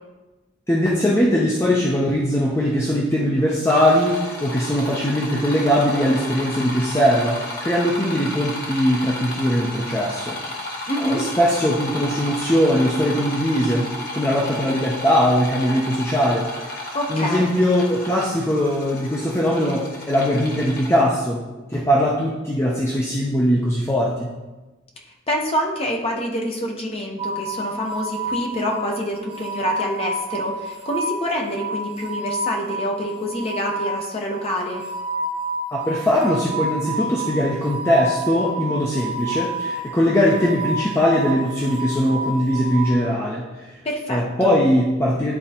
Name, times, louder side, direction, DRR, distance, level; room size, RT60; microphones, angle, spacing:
voice 1, 0.7-10.4 11.0-16.5 17.1-21.4 21.7-24.3 35.7-43.7 44.1-45.3, equal, 15° left, -4 dB, 0.6 m, -20 dB
sound 1, 3.7-21.0, left 2 dB, 50° left, 1.3 m, -33 dB
voice 2, 10.9-11.2 16.9-17.5 25.3-34.8 43.8-44.5, equal, 30° left, 0 dB, 1.0 m, -26 dB
sound 2, 27.2-42.9, right 1 dB, 25° right, 1.0 m, -29 dB
11.0 x 3.9 x 2.8 m, 1.2 s
head